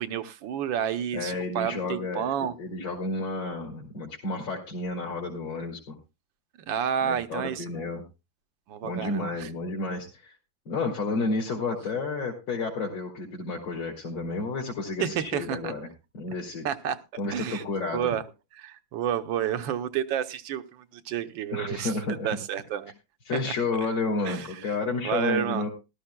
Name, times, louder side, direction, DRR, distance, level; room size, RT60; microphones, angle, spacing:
voice 1, 0.0-2.5 6.7-7.9 8.7-9.5 15.0-15.7 16.6-17.0 17.3-17.6 17.9-18.2 18.5-22.0 22.2-22.9 23.5-23.6 23.8-23.9 24.2-24.7 25.0-25.6, right 9 dB, 80° right, 1.5 m, -30 dB
voice 2, 1.1-6.0 7.0-8.0 8.8-10.3 10.7-15.9 16.2-16.6 17.2-18.1 21.5-22.3 23.3-25.7, left 3 dB, 90° left, 3.3 m, -31 dB
19.0 x 12.5 x 2.2 m
omnidirectional pair, 2.0 m